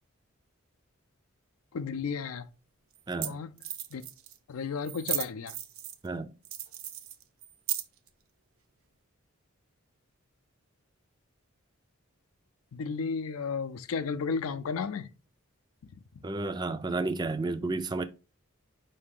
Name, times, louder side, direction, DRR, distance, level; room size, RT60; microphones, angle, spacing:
voice 1, 1.7-2.5 3.1-3.5 3.9-4.0 4.5-5.5 12.7-15.1, left 5 dB, 85° left, 0.4 m, -33 dB
sound 1, 2.1-2.2 3.0-3.1 3.2-3.3 3.6-4.4 4.8-6.1 6.4-8.1, right 12 dB, 80° right, 0.6 m, -35 dB
voice 2, 3.1-3.4 6.0-6.3 16.2-18.0, right 3 dB, 20° right, 0.3 m, -31 dB
4.8 x 2.8 x 3.6 m
head